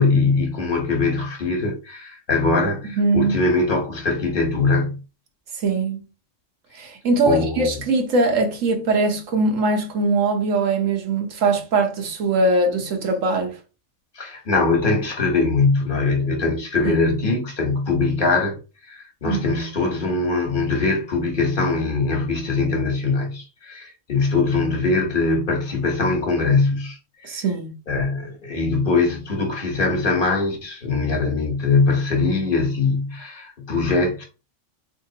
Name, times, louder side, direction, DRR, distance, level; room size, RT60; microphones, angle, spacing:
voice 1, 0.0-5.0 7.2-7.7 14.2-18.6 18.9-27.0 27.2-27.4 27.9-34.2, left 3 dB, 45° left, 1.2 m, -22 dB
voice 2, 3.0-3.4 5.6-6.0 6.8-13.6 16.8-16.9 19.2-19.4 27.2-27.7, right 3 dB, 85° right, 1.3 m, -21 dB
3.8 x 3.4 x 2.8 m
omnidirectional pair, 1.3 m